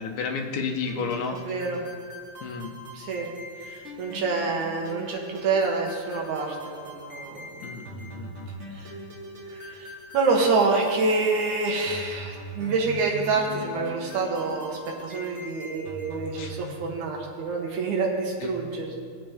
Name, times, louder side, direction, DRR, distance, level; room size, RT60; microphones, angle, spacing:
voice 1, 0.0-1.4 2.4-2.7 7.6-8.5 16.4-16.5 18.4-18.6, left 5 dB, 70° left, 2 dB, 2.3 m, -32 dB
sound 1, 0.9-16.7, equal, 50° right, 0.8 m, -41 dB
voice 2, 1.3-1.8 2.9-3.3 3.6-7.6 8.7-9.0 9.5-19.0, right 3 dB, 70° right, 0 dB, 2.7 m, -27 dB
19.0 x 7.9 x 3.5 m, 2.2 s
omnidirectional pair, 3.8 m